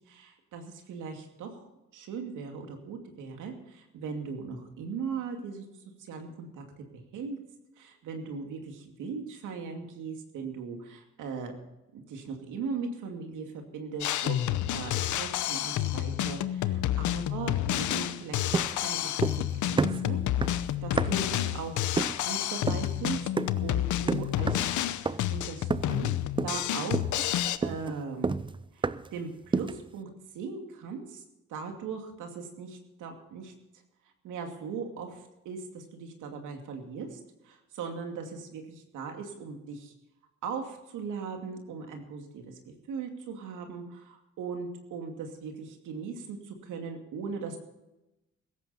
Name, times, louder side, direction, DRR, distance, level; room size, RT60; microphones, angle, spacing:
voice 1, 0.1-5.6 6.0-6.6 7.1-7.4 7.8-11.6 11.9-20.2 20.8-21.8 22.3-23.3 23.6-24.6 25.0-26.1 26.4-27.0 27.6-28.4 28.7-30.1 30.3-31.2 31.5-33.5 34.2-37.2 37.4-39.9 40.4-47.6, right 5 dB, 85° right, 4 dB, 2.5 m, -39 dB
Drum kit, 14.0-27.6, left 12 dB, 80° left, 0.8 m, -29 dB
sound 1, 18.5-19.5 19.8-21.4 22.0-22.3 22.7-22.9 23.4-23.7 24.1-24.7 25.1-25.4 25.7-26.1 26.4-26.7 26.9-29.2 29.5-29.9, right 4 dB, 15° right, 0.5 m, -31 dB
16.5 x 14.5 x 4.3 m, 0.96 s
cardioid pair, 90°, 30 cm